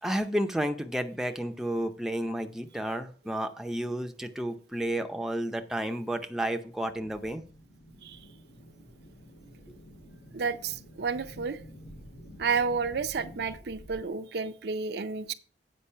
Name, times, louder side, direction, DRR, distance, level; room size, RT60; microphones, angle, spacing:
voice 1, 0.0-7.4, right 1 dB, 5° right, 0.5 m, -31 dB
sound 1, 7.0-14.0, equal, 90° left, 3.3 m, -50 dB
voice 2, 10.3-11.6 12.4-15.3, right 5 dB, 65° right, 0.5 m, -31 dB
8.5 x 5.2 x 5.5 m
head